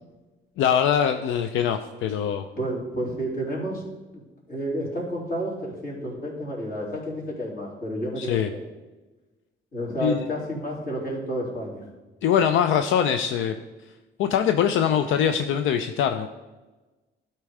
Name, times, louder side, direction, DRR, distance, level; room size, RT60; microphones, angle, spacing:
voice 1, 0.6-2.5 8.2-8.5 10.0-10.3 12.2-13.6 14.2-16.3, left 8 dB, 80° left, 8 dB, 0.5 m, -23 dB
voice 2, 2.6-3.8 4.5-8.7 9.7-11.8, equal, 50° left, -4 dB, 3.3 m, -30 dB
12.0 x 4.4 x 4.8 m, 1.2 s
cardioid pair, 90°, 20 cm